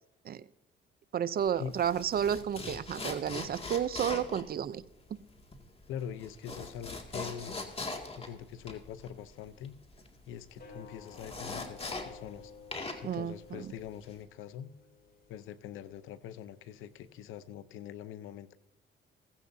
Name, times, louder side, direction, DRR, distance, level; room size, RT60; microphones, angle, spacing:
voice 1, 1.1-4.8 13.0-13.7, right 9 dB, 50° right, 16 dB, 0.6 m, -32 dB
sound 1, 1.4-12.4 12.7-14.2, left 3 dB, 30° left, 2.2 m, -42 dB
voice 2, 5.9-7.6 8.1-9.7 10.3-12.5 13.0-14.7 15.3-18.6, left 9 dB, 90° left, 14 dB, 0.7 m, -43 dB
sound 2, 10.5-17.5, left 4 dB, 50° left, 4.0 m, -55 dB
16.0 x 16.0 x 2.7 m, 0.89 s
cardioid pair, 90°, 20 cm